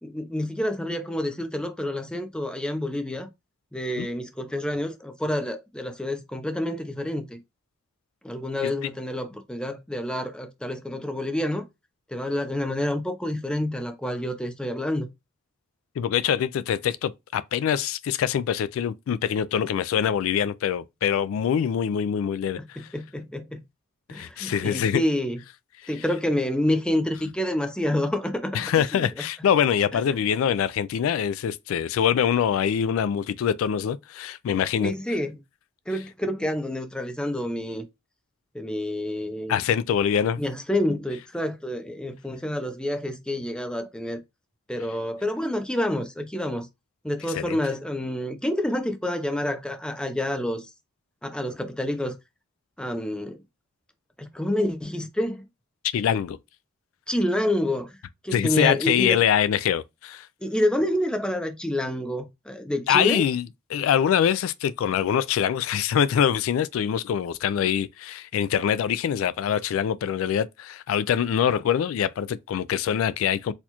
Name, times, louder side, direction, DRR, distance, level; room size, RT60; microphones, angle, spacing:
voice 1, 0.0-3.3 3.7-7.4 8.2-11.6 12.1-15.1 22.6-23.6 24.1-25.4 25.9-28.6 28.9-29.0 34.8-35.3 35.9-37.8 38.5-39.6 40.4-44.2 44.7-46.7 47.0-50.7 51.2-52.2 52.8-53.4 54.2-55.4 57.1-58.0 58.2-59.2 60.4-63.2, left 1 dB, 5° left, 0.5 m, -28 dB
voice 2, 16.0-22.9 24.1-25.0 28.5-34.9 39.5-40.4 47.4-47.6 55.9-56.4 58.3-60.3 62.9-73.5, left 8 dB, 80° left, 0.3 m, -24 dB
4.3 x 2.3 x 2.9 m
head